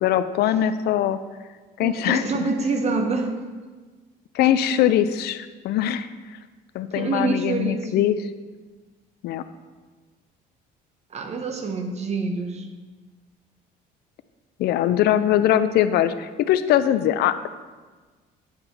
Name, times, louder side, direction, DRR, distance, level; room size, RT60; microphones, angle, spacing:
voice 1, 0.0-1.2 1.8-2.2 4.3-6.1 6.7-8.2 9.2-9.4 14.6-17.5, left 11 dB, 70° left, 12 dB, 0.4 m, -21 dB
voice 2, 1.8-3.3 7.0-7.9 11.1-12.7, right 3 dB, 40° right, 5 dB, 1.0 m, -26 dB
9.7 x 3.4 x 5.9 m, 1.3 s
cardioid pair, 110°, 17 cm